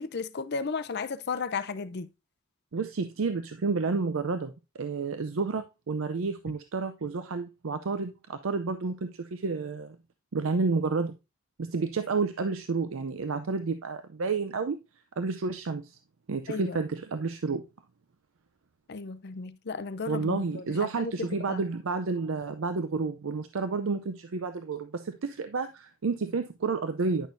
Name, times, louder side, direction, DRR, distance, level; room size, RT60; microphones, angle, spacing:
voice 1, 0.0-2.1 16.5-16.8 18.9-20.6 21.0-21.1 21.5-21.6, left 4 dB, 50° left, 0.6 m, -34 dB
voice 2, 2.7-10.0 10.3-11.1 11.6-14.8 15.2-16.0 16.3-17.6 20.1-27.3, right 4 dB, 70° right, 0.5 m, -30 dB
10.0 x 6.2 x 2.6 m
head